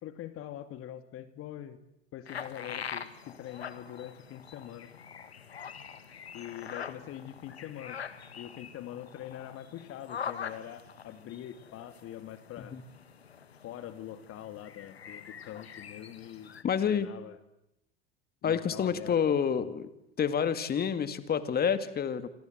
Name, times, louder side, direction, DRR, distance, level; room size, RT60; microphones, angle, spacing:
voice 1, 0.0-1.8 2.1-4.9 6.3-8.0 8.4-12.8 13.6-17.4 18.4-19.2, left 11 dB, 45° left, 11 dB, 2.2 m, -44 dB
sound 1, 2.3-16.6, left 7 dB, 90° left, 1.7 m, -44 dB
voice 2, 16.6-17.1 18.4-19.9 20.2-22.3, left 7 dB, 30° left, 12 dB, 2.3 m, -28 dB
27.5 x 27.0 x 7.9 m, 0.86 s
hypercardioid pair, 80°, 30 cm